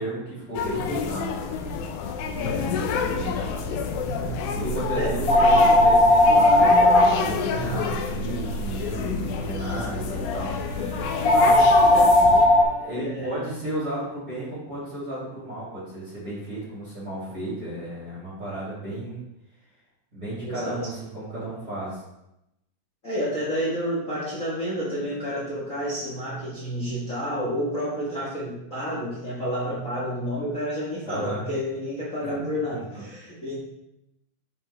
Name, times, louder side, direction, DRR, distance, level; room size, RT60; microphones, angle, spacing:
voice 1, 0.0-2.0 2.4-6.7 7.0-10.9 11.2-11.8 12.6-19.2 20.1-22.0 31.1-31.4 32.2-33.0, right 1 dB, 30° right, -10 dB, 2.6 m, -34 dB
sound 1, 0.5-12.5, left 4 dB, 80° left, 1.8 m, -29 dB
sound 2, 2.3-12.6, left 1 dB, 35° left, 1.5 m, -21 dB
voice 2, 2.4-2.7 4.0-4.3 4.9-5.2 7.5-7.8 12.9-13.4 20.4-20.8 23.0-33.6, equal, 60° left, -6 dB, 0.8 m, -30 dB
Wind instrument woodwind instrument, 9.1-13.6, left 1 dB, 65° right, 2.3 m, -43 dB
7.3 x 6.6 x 3.4 m, 0.87 s
omnidirectional pair, 4.1 m